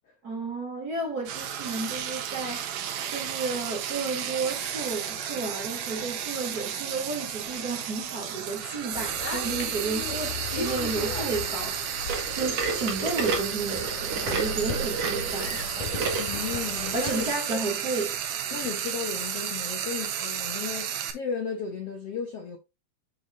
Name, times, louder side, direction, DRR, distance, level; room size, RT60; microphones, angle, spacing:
voice 1, 0.2-2.8 3.1-11.8 12.3-15.6 16.9-18.1, right 3 dB, 25° right, 2.8 m, -32 dB
Frying (food), 1.3-21.1, right 9 dB, 75° right, 2.9 m, -33 dB
sound 1, 8.9-17.3, left 3 dB, 55° left, 3.9 m, -36 dB
sound 2, 12.1-16.3 16.9-17.0 17.7-17.8 18.6-18.7, right 4 dB, 50° right, 2.5 m, -31 dB
voice 2, 16.2-17.8 18.5-22.6, left 6 dB, 80° left, 1.3 m, -35 dB
7.6 x 6.9 x 2.7 m
omnidirectional pair, 4.4 m